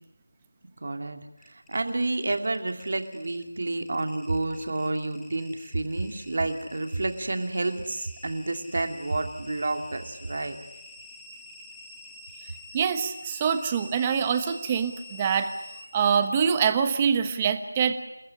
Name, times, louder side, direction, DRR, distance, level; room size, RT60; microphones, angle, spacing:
voice 1, 0.8-1.2 1.5-10.6, right 2 dB, 50° right, 6 dB, 2.6 m, -29 dB
sound 1, 1.4-16.3, left 1 dB, ahead, 1.7 m, -47 dB
voice 2, 12.7-15.5 15.9-18.1, right 7 dB, 15° right, 9 dB, 1.2 m, -25 dB
28.0 x 14.0 x 9.7 m, 0.94 s
figure-of-eight pair, 170°, 0 cm